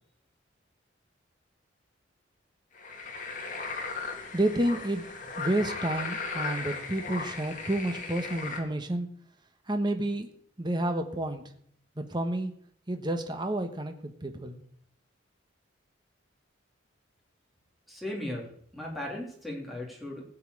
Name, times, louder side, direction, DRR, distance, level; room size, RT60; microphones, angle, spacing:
sound 1, 2.7-8.6, left 4 dB, 40° left, 2.2 m, -37 dB
voice 1, 4.3-5.0 5.4-9.1 9.7-10.3 10.6-11.4 12.0-12.5 12.9-14.6, right 1 dB, 20° right, 6 dB, 1.1 m, -30 dB
voice 2, 17.9-20.2, left 1 dB, ahead, -2 dB, 3.2 m, -37 dB
16.0 x 5.6 x 8.5 m, 0.63 s
head